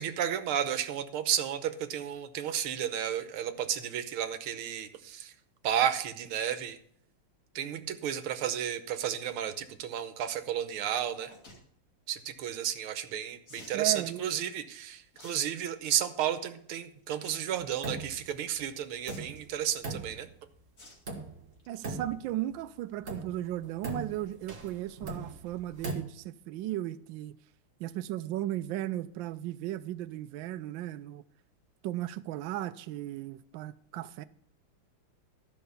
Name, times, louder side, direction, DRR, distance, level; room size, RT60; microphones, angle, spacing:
voice 1, 0.0-5.3 5.6-6.8 7.6-11.3 12.1-20.3, right 10 dB, 90° right, 1.7 m, -32 dB
sound 1, 11.2-11.6 13.5-13.8 15.1-15.4 15.8-16.1 17.2-17.4 17.7-17.8 19.0-19.5 20.8-21.0 21.4-21.7 22.0-22.1 22.3-22.4, left 2 dB, 40° left, 2.5 m, -51 dB
voice 2, 13.7-14.2 21.7-27.4 27.8-31.2 31.8-34.2, right 14 dB, 75° right, 1.2 m, -36 dB
sound 2, 17.6-18.3 18.6-18.7 19.1-20.6 21.1-21.6 21.8-22.6 23.0-26.0, right 3 dB, 40° right, 1.8 m, -39 dB
13.0 x 5.6 x 6.9 m
omnidirectional pair, 2.3 m